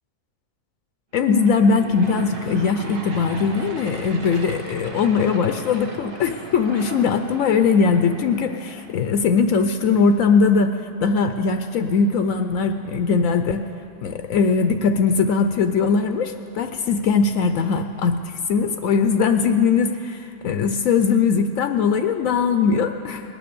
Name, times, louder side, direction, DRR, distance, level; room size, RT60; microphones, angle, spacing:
voice 1, 1.1-13.7 14.0-23.2, left 5 dB, 75° left, 7 dB, 1.0 m, -20 dB
Aircraft / Engine, 1.2-9.2, right 2 dB, 40° right, 1.3 m, -37 dB
19.5 x 9.3 x 6.9 m, 2.7 s
omnidirectional pair, 1.4 m